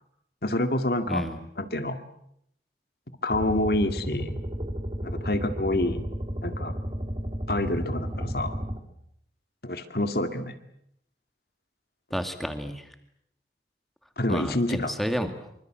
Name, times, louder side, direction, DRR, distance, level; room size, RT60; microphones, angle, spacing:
voice 1, 0.4-1.2 1.6-2.0 3.2-4.4 5.0-6.0 6.4-6.7 7.5-8.5 9.6-10.6 14.2-14.9, left 1 dB, 60° left, 8 dB, 2.2 m, -27 dB
voice 2, 1.1-1.4 12.1-12.9 14.3-15.3, equal, ahead, 7 dB, 2.3 m, -30 dB
sound 1, 3.3-8.8, equal, 30° right, 2.9 m, -33 dB
26.0 x 25.0 x 7.8 m, 0.74 s
head